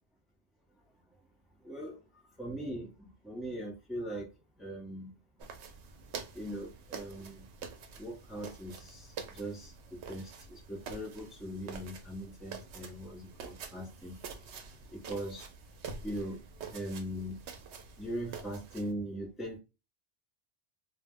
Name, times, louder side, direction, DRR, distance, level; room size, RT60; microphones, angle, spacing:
voice 1, 1.6-2.0 2.4-4.3 4.6-5.1 6.3-7.4 8.0-14.2 14.4-14.6 14.9-15.5 16.0-16.4 16.7-17.4 18.0-19.6, equal, ahead, 0.6 m, -40 dB
sound 1, 5.4-18.9, right 5 dB, 85° right, 0.9 m, -47 dB
2.3 x 2.0 x 3.4 m
omnidirectional pair, 1.1 m